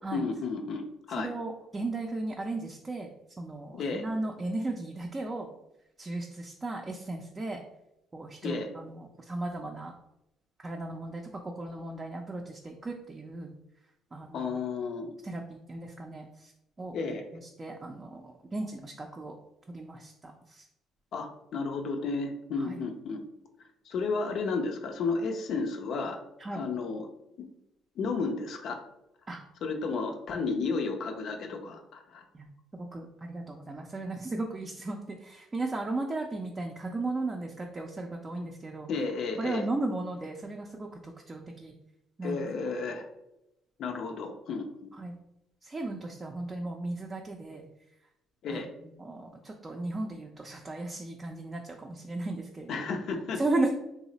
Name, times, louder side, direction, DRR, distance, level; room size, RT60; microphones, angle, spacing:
voice 1, 0.1-1.3 3.7-4.0 8.4-8.7 14.3-15.1 16.9-17.2 21.1-23.2 23.9-26.2 26.5-27.1 28.0-28.8 29.6-32.2 38.9-39.7 42.2-43.0 43.8-44.6 48.4-48.7 52.7-53.4, left 4 dB, 65° left, 4 dB, 0.5 m, -32 dB
voice 2, 1.2-3.1 3.4-5.5 6.0-7.6 8.1-9.9 10.6-13.5 14.1-14.5 15.2-16.5 16.8-16.9 17.3-19.4 19.7-20.7 22.6-22.8 26.4-26.6 29.3-29.4 32.3-32.5 32.7-38.9 39.4-41.7 42.2-42.5 45.0-45.1 45.6-47.6 48.5-48.6 49.0-52.9 53.4-53.7, right 2 dB, 25° right, 1 dB, 0.4 m, -35 dB
3.0 x 2.0 x 3.9 m, 0.86 s
cardioid pair, 85°, 0 cm